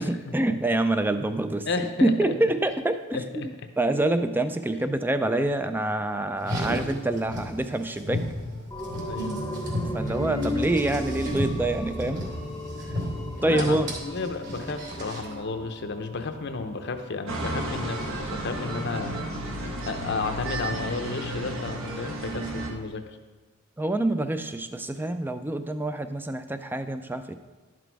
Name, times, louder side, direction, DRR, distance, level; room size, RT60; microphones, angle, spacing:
voice 1, 0.0-1.7 2.0-3.5 3.8-8.2 9.9-12.2 13.4-13.9 23.8-27.3, right 1 dB, 10° right, 10 dB, 0.4 m, -26 dB
voice 2, 1.7-2.1 3.1-3.2 9.0-9.4 13.4-19.3 19.9-23.0, left 3 dB, 50° left, 7 dB, 0.7 m, -32 dB
Car, 6.4-15.4, left 1 dB, 50° right, 2.8 m, -33 dB
sound 1, 8.7-18.1 18.4-18.5, equal, 15° left, 0.8 m, -37 dB
sound 2, 17.3-22.7, right 1 dB, 65° right, 1.3 m, -32 dB
11.5 x 6.1 x 4.6 m, 1.3 s
head